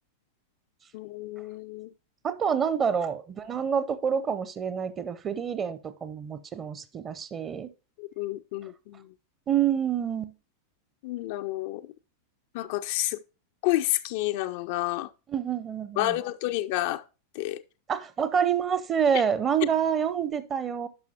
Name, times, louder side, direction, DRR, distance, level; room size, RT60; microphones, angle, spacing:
voice 1, 0.9-1.9 8.0-9.0 11.0-11.9 12.5-13.2 13.6-15.1 16.0-17.0 17.4-17.6, left 17 dB, 50° left, 0.3 m, -30 dB
voice 2, 2.2-7.7 9.5-10.3 15.3-16.2 17.9-20.9, right 7 dB, 25° right, 0.6 m, -27 dB
10.5 x 6.0 x 2.8 m
figure-of-eight pair, 90°, 0 cm